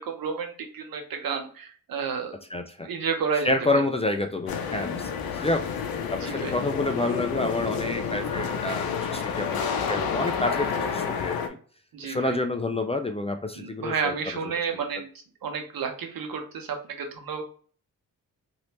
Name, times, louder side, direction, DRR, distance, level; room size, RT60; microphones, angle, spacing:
voice 1, 0.0-2.4 2.8-3.8 6.2-6.6 11.9-12.4 13.5-15.1 15.4-17.4, right 6 dB, 75° right, 4 dB, 0.9 m, -31 dB
voice 2, 2.5-2.9 3.4-5.7 6.1-11.6 12.0-14.2, left 2 dB, 20° left, 6 dB, 0.3 m, -28 dB
sound 1, 4.5-11.5, left 6 dB, 85° left, 0.6 m, -29 dB
3.2 x 2.7 x 2.9 m, 0.43 s
cardioid pair, 90°, 35 cm